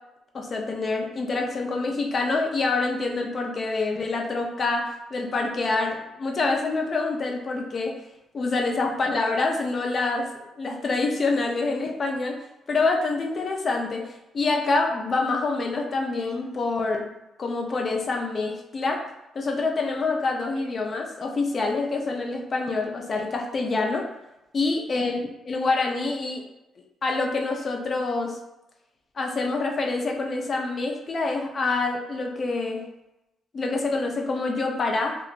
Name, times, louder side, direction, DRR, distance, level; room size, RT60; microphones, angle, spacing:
voice 1, 0.3-8.0 8.3-10.3 10.6-12.4 12.7-17.1 17.4-19.0 19.3-24.1 24.5-25.2 25.5-26.4 27.0-28.4 29.2-32.8 33.5-35.2, left 3 dB, 40° left, 2 dB, 0.5 m, -26 dB
2.9 x 2.4 x 2.4 m, 0.93 s
cardioid pair, 90°, 0 cm